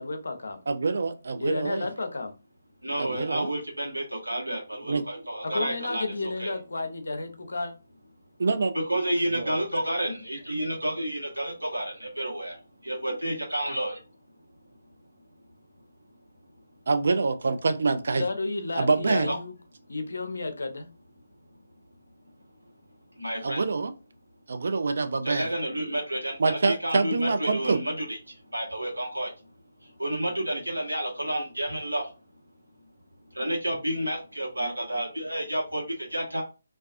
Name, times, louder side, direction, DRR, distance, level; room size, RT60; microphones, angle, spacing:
voice 1, 0.0-0.6 1.4-2.3 5.4-7.7 18.2-19.6 19.9-20.9, left 2 dB, 65° left, 6 dB, 0.5 m, -32 dB
voice 2, 0.7-1.9 3.0-3.5 4.9-5.0 8.4-8.7 9.3-9.6 16.9-18.2 18.8-19.3 23.4-23.9 24.5-25.5 26.4-27.8, right 4 dB, 55° right, 8 dB, 0.4 m, -25 dB
voice 3, 2.8-6.0 6.4-6.5 8.9-12.6 12.8-14.0 19.3-19.4 23.2-23.6 25.2-29.3 29.8-32.1 33.3-36.4, right 1 dB, 85° right, -1 dB, 1.0 m, -30 dB
2.3 x 2.2 x 2.4 m, 0.30 s
figure-of-eight pair, 145°, 0 cm